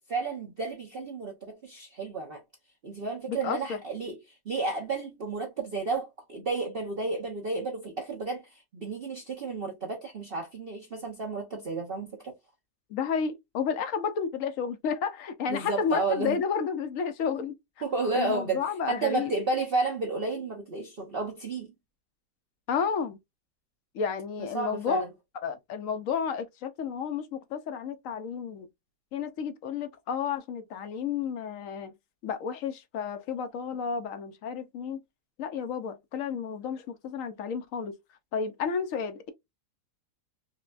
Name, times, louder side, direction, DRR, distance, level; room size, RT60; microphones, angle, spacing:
voice 1, 0.1-2.4 2.8-12.3 15.5-16.4 17.8-21.7 24.4-25.1, right 3 dB, 45° right, 0.8 m, -32 dB
voice 2, 3.3-3.8 12.9-17.5 18.1-19.3 22.7-23.2 23.9-25.0 25.4-28.7 29.1-31.9 32.2-35.0 35.4-38.0 38.3-39.3, left 6 dB, 65° left, 0.9 m, -31 dB
5.3 x 2.2 x 2.4 m
omnidirectional pair, 1.8 m